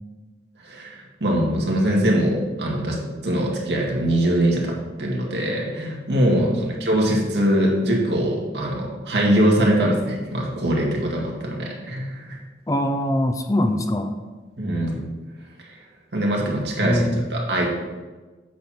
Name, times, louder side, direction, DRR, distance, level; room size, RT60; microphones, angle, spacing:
voice 1, 0.6-3.0 3.2-12.4 14.6-15.0 16.1-17.7, right 1 dB, 80° right, -2 dB, 2.0 m, -22 dB
voice 2, 6.4-6.8 12.7-14.1 16.8-17.3, left 1 dB, 20° left, 7 dB, 0.5 m, -23 dB
8.4 x 6.3 x 4.3 m, 1.3 s
head